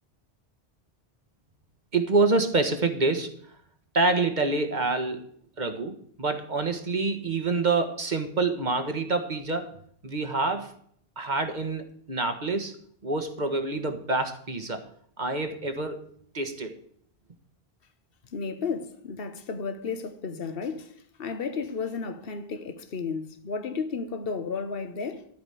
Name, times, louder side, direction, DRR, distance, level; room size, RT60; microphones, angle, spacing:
voice 1, 1.9-3.4 3.9-5.3 5.6-9.7 10.0-10.7 11.2-12.7 13.0-14.8 15.2-16.1 16.3-16.7, right 3 dB, 45° right, 1.5 m, -27 dB
voice 2, 18.3-25.3, left 5 dB, 60° left, 1.3 m, -33 dB
13.0 x 5.1 x 9.1 m
omnidirectional pair, 1.1 m